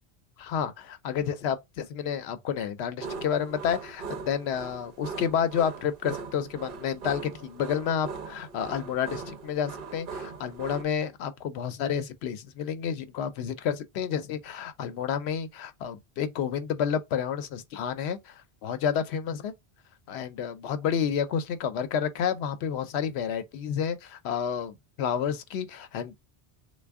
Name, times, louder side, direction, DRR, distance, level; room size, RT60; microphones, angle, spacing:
voice 1, 0.4-19.5 20.1-26.2, left 8 dB, 80° left, 0.8 m, -30 dB
sound 1, 3.0-10.8, right 5 dB, 55° right, 0.8 m, -40 dB
3.3 x 2.2 x 3.4 m
omnidirectional pair, 1.1 m